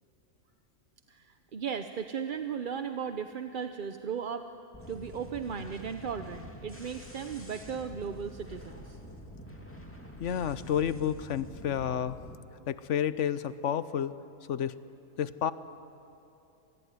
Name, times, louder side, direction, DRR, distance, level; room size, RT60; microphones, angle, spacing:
voice 1, 1.1-4.5 4.9-9.0, right 7 dB, 45° right, 8 dB, 0.8 m, -36 dB
sound 1, 4.7-12.4, equal, 10° left, 2.4 m, -47 dB
voice 2, 10.2-12.2 12.7-14.1 14.5-14.7 15.2-15.5, left 9 dB, 65° left, 14 dB, 1.0 m, -30 dB
26.5 x 20.0 x 9.6 m, 2.8 s
omnidirectional pair, 1.4 m